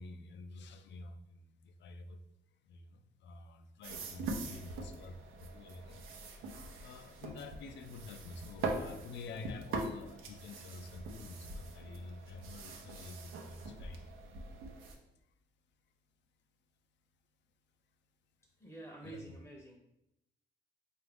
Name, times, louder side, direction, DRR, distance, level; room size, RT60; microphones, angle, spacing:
voice 1, 0.0-2.2 2.5-6.1 6.5-14.1 15.2-15.3 19.0-19.4, left 3 dB, 65° left, 0.4 m, -49 dB
sound 1, 3.8-15.0, right 3 dB, 90° right, 0.6 m, -43 dB
voice 2, 18.6-19.8, right 2 dB, 15° left, 0.6 m, -49 dB
4.0 x 2.4 x 3.4 m
cardioid pair, 90°, 20 cm